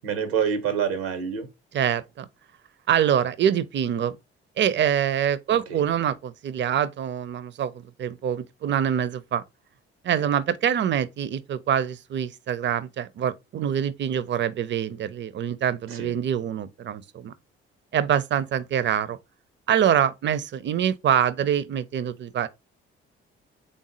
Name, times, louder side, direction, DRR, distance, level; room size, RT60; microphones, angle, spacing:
voice 1, 0.0-1.5 5.5-5.8 15.9-16.1, right 7 dB, 85° right, 0.7 m, -27 dB
voice 2, 1.7-2.3 2.9-4.2 4.6-9.4 10.0-17.3 17.9-19.2 19.7-22.5, right 9 dB, 40° right, 0.5 m, -25 dB
3.6 x 2.0 x 3.7 m
hypercardioid pair, 45°, 30 cm